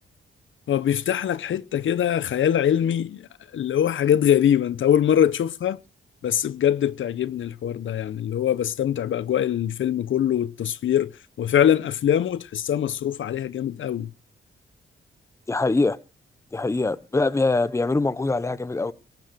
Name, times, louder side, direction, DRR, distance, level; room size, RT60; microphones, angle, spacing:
voice 1, 0.7-5.8 6.2-11.1 11.4-14.1, left 10 dB, 70° left, 0.8 m, -23 dB
voice 2, 15.5-16.0 16.5-18.9, left 3 dB, 15° left, 0.8 m, -23 dB
18.5 x 9.4 x 6.8 m
wide cardioid pair, 125°, 21 cm